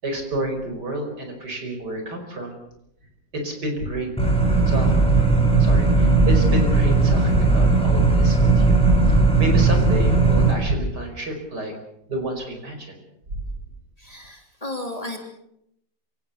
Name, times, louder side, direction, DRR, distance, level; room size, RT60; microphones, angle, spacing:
voice 1, 0.0-2.6 3.3-4.1 4.7-4.9 5.6-8.8 9.4-11.7 12.1-13.0, right 1 dB, 60° right, 4 dB, 5.6 m, -29 dB
sound 1, 4.2-10.5, right 3 dB, 5° left, 5.0 m, -17 dB
voice 2, 14.0-15.2, left 2 dB, 20° left, 2 dB, 3.4 m, -33 dB
27.0 x 17.0 x 7.0 m, 0.77 s
omnidirectional pair, 2.1 m